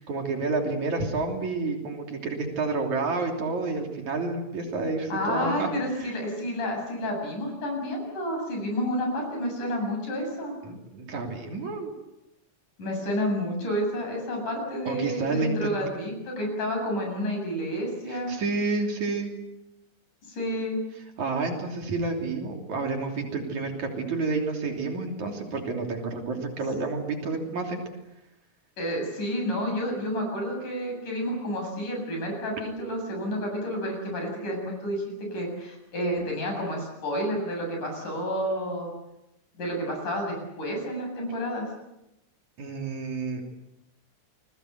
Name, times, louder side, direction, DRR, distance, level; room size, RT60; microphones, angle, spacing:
voice 1, 0.0-5.7 6.0-6.1 10.6-11.9 14.9-15.8 18.1-19.3 21.2-27.8 42.6-43.4, right 3 dB, 65° right, 2 dB, 4.5 m, -29 dB
voice 2, 5.1-10.6 12.8-18.4 20.2-20.8 28.8-38.9 39.6-41.7, equal, 85° left, 2 dB, 9.4 m, -30 dB
28.5 x 21.5 x 8.0 m, 0.91 s
omnidirectional pair, 3.5 m